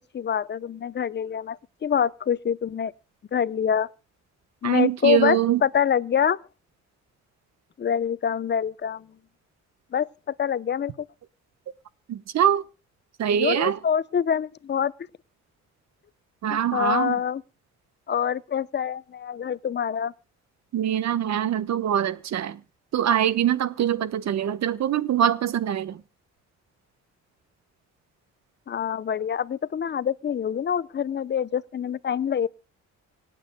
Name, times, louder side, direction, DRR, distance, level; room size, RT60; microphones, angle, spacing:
voice 1, 0.1-2.9 3.3-3.9 4.6-6.4 7.8-9.1 9.9-11.1 13.3-14.9 16.5-17.4 18.1-20.1 28.7-32.5, left 8 dB, 35° left, 0.7 m, -25 dB
voice 2, 4.6-5.6 12.1-12.6 13.2-13.8 16.4-17.2 20.7-22.6 22.9-26.0, right 10 dB, 60° right, 1.1 m, -23 dB
25.5 x 9.2 x 2.2 m
cardioid pair, 90°, 30 cm